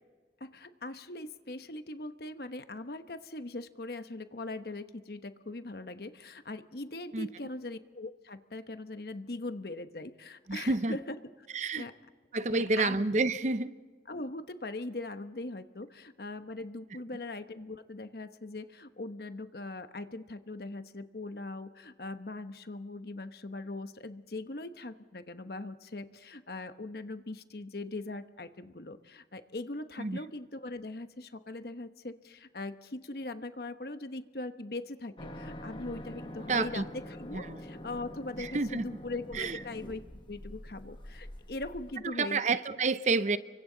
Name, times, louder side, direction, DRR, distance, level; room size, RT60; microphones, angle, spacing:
voice 1, 0.4-11.2 11.7-11.9 12.5-13.0 14.1-40.0 40.3-42.4, left 2 dB, 60° left, 10 dB, 1.0 m, -41 dB
voice 2, 10.5-11.0 11.5-11.9 12.3-13.7 30.0-30.2 36.5-36.9 37.3-37.6 38.4-38.8 39.3-39.6 42.0-43.4, right 3 dB, 40° right, 13 dB, 0.7 m, -29 dB
sound 1, 35.2-41.9, equal, 25° left, 1.3 m, -45 dB
30.0 x 24.5 x 3.9 m, 1.5 s
head